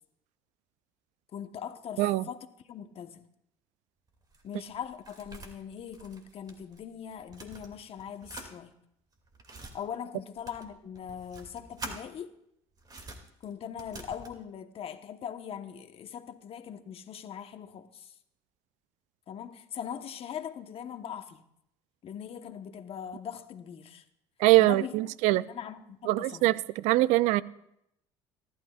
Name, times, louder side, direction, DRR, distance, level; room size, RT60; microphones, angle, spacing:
voice 1, 1.3-3.3 4.4-8.7 9.7-12.3 13.4-18.1 19.3-21.4 22.0-24.0 24.6-26.5, left 8 dB, 50° left, 1.2 m, -41 dB
sound 1, 4.1-6.8 7.1-8.5 9.1-9.8 10.4-12.0 12.8-14.4, right 2 dB, 30° right, 2.4 m, -46 dB
voice 2, 24.4-25.4 26.1-27.4, right 17 dB, 75° right, 0.4 m, -23 dB
24.0 x 12.0 x 2.4 m
supercardioid pair, 85°, 12 cm